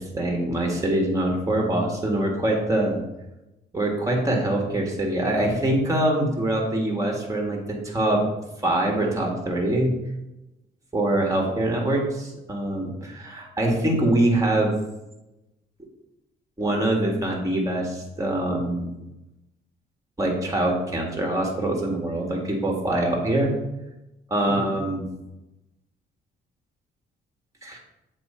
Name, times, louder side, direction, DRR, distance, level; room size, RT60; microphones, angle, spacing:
voice 1, 0.0-3.0 3.7-8.2 8.6-9.9 10.9-14.7 16.6-18.9 20.2-23.5 24.3-25.1 27.6-27.8, right 1 dB, 15° right, 0 dB, 1.6 m, -24 dB
7.8 x 3.1 x 4.3 m, 0.95 s
cardioid pair, 90°, 20 cm